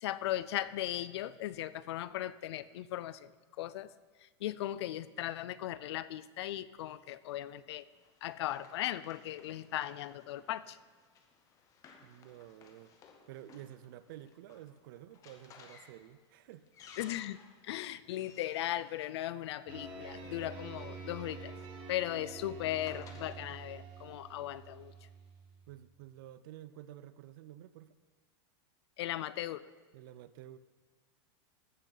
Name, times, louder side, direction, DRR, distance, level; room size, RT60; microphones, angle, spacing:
voice 1, 0.0-3.3 3.6-3.9 4.2-7.8 8.2-10.8 17.0-17.4 17.6-21.5 21.9-24.9 29.0-29.7, left 13 dB, 65° left, 17 dB, 0.4 m, -37 dB
Run, 7.3-19.9 20.9-23.4, left 6 dB, 20° left, 0.8 m, -60 dB
voice 2, 12.0-16.7 25.7-28.0 29.9-30.6, right 13 dB, 50° right, 15 dB, 0.4 m, -51 dB
sound 1, 19.7-25.9, right 4 dB, 30° right, 1.5 m, -48 dB
Wind instrument woodwind instrument, 20.5-25.3, right 13 dB, 85° right, 1.3 m, -61 dB
14.5 x 6.5 x 3.9 m, 1.4 s
supercardioid pair, 165°, 15 cm